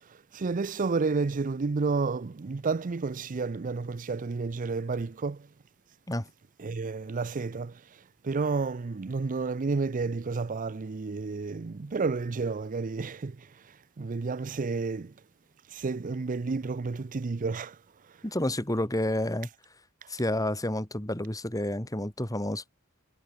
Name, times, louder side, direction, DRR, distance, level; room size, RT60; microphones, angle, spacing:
voice 1, 0.0-5.5 6.6-15.1 15.7-17.8 18.0-18.2 20.0-20.1, right 4 dB, 40° right, 0.5 m, -31 dB
voice 2, 18.2-19.5 20.1-22.6, left 1 dB, 15° left, 2.8 m, -29 dB
head